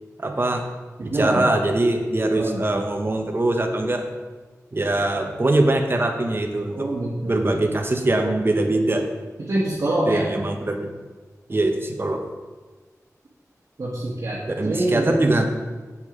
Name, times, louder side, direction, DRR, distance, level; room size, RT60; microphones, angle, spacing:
voice 1, 0.2-0.6 1.0-4.0 4.7-6.9 7.3-9.0 10.1-10.9 11.5-12.2 14.5-15.4, right 2 dB, 40° right, 4 dB, 1.2 m, -22 dB
voice 2, 1.0-1.5 2.3-2.8 6.7-7.5 9.5-10.3 13.8-14.4 14.6-15.2, right 1 dB, 60° right, -6 dB, 1.7 m, -25 dB
7.5 x 7.5 x 5.1 m, 1.4 s
wide cardioid pair, 85°, 6 cm